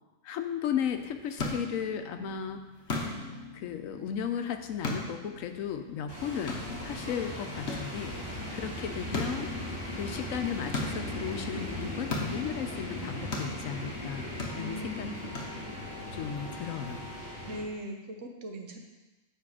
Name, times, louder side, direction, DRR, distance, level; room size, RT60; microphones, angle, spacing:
voice 1, 0.2-2.6 3.5-6.6 6.8-9.5 9.9-15.3 16.1-17.1, left 8 dB, 80° left, 7 dB, 1.0 m, -35 dB
sound 1, 0.8-16.0, left 2 dB, 60° left, 1.3 m, -39 dB
sound 2, 6.1-17.6, left 1 dB, 20° right, 2.1 m, -38 dB
voice 2, 14.6-15.2 17.5-18.8, equal, 65° right, 2 dB, 1.3 m, -39 dB
8.3 x 5.2 x 4.8 m, 1.1 s
omnidirectional pair, 1.4 m